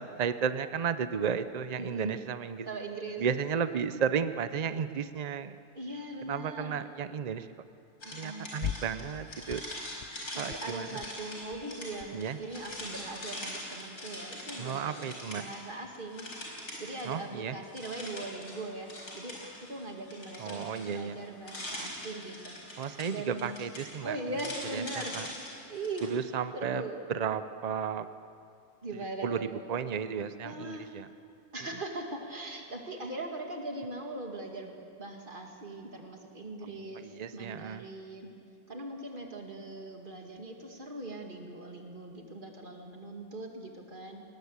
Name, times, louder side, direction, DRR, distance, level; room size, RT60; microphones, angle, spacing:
voice 1, 0.0-2.7 3.2-5.6 6.3-7.5 8.1-9.6 10.4-10.9 12.1-12.4 14.6-15.4 17.0-17.6 20.4-21.2 22.8-24.2 24.7-25.3 26.0-26.8 27.1-28.1 29.2-31.1 36.9-37.8, right 7 dB, 80° right, 12 dB, 0.3 m, -33 dB
voice 2, 1.8-2.1 2.7-3.2 5.7-6.8 8.0-8.5 10.3-15.0 15.3-23.6 24.0-25.2 25.7-26.2 26.5-27.0 28.8-29.4 30.4-30.9 31.5-34.7 35.0-37.1 37.3-38.3 38.7-44.2, right 2 dB, 35° right, 2 dB, 2.3 m, -40 dB
sound 1, 8.0-15.7 15.9-17.3 17.6-26.1, left 1 dB, 80° left, 5.3 m, -43 dB
sound 2, 8.6-9.2 9.5-10.1 10.4-10.6 10.9-11.1 11.4-12.2 12.4-13.4, left 9 dB, 60° left, 0.6 m, -41 dB
20.0 x 18.5 x 8.2 m, 2.5 s
omnidirectional pair, 1.6 m